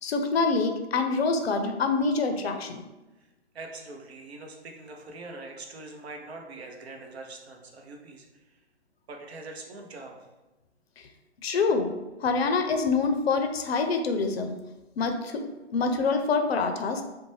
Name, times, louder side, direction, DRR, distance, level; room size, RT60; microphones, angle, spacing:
voice 1, 0.0-2.8 11.4-11.9 12.2-14.6 15.0-15.5 15.7-17.0, left 4 dB, 60° left, 5 dB, 0.5 m, -26 dB
voice 2, 3.5-8.3 9.1-10.2, right 2 dB, 65° right, 2 dB, 0.7 m, -43 dB
2.5 x 2.1 x 3.1 m, 1.0 s
figure-of-eight pair, 135°, 35 cm